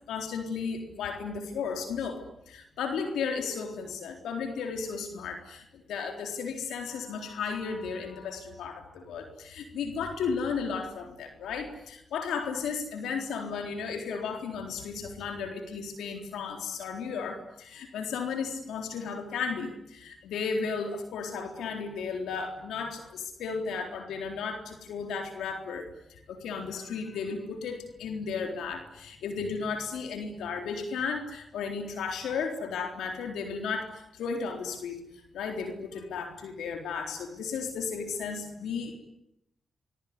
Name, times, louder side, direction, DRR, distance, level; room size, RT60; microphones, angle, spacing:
voice 1, 0.1-35.0 35.3-39.0, left 5 dB, 80° left, 4 dB, 3.9 m, -34 dB
27.0 x 21.5 x 9.7 m, 0.81 s
supercardioid pair, 40°, 0 cm